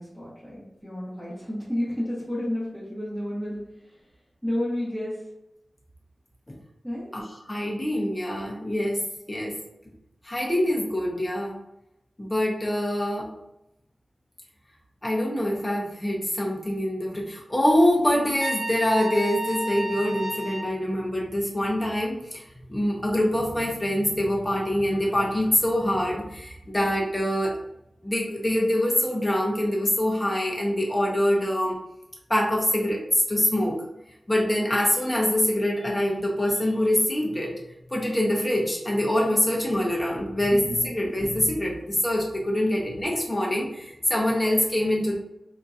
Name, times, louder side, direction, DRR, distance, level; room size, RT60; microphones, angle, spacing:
voice 1, 0.0-3.6 4.4-5.2 6.8-7.1 40.7-40.8 42.7-42.8, left 1 dB, 5° right, -10 dB, 1.1 m, -31 dB
voice 2, 7.1-9.0 9.3-9.6 10.2-11.6 12.2-13.3 15.0-22.2 22.7-27.5 28.0-31.8 32.3-33.8 34.3-37.5 37.9-45.1, left 1 dB, 15° left, -2 dB, 0.8 m, -24 dB
Trumpet, 18.4-20.7, right 1 dB, 55° right, 1.1 m, -31 dB
3.7 x 2.7 x 2.4 m, 0.87 s
wide cardioid pair, 105°, 0 cm